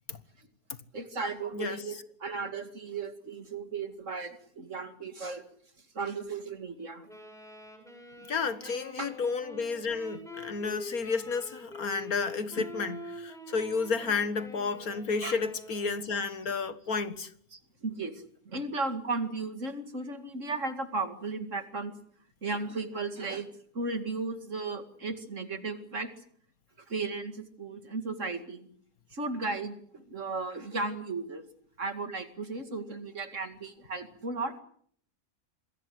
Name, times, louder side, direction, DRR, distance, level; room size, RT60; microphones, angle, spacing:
voice 1, 0.9-5.4 5.9-7.1 8.6-8.7 9.0-9.1 12.6-12.7 15.2-15.4 17.5-21.9 22.4-23.5 23.7-26.1 26.9-28.7 29.1-31.4 31.8-34.6, right 3 dB, 50° right, 2.6 m, -35 dB
Wind instrument woodwind instrument, 7.1-16.1, left 1 dB, ahead, 7.5 m, -45 dB
voice 2, 8.3-17.3, left 4 dB, 65° left, 2.0 m, -31 dB
27.0 x 21.5 x 7.9 m
omnidirectional pair, 1.7 m